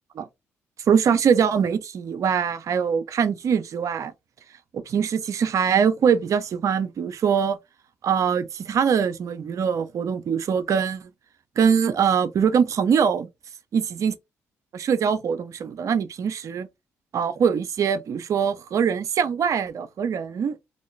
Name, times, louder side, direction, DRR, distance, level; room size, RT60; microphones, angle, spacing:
voice 1, 0.9-4.1 4.7-7.6 8.0-11.1 11.6-13.3 13.7-14.1 14.7-16.7 17.1-20.6, right 7 dB, 60° right, 0.5 m, -23 dB
2.5 x 2.2 x 3.1 m
supercardioid pair, 50°, 6 cm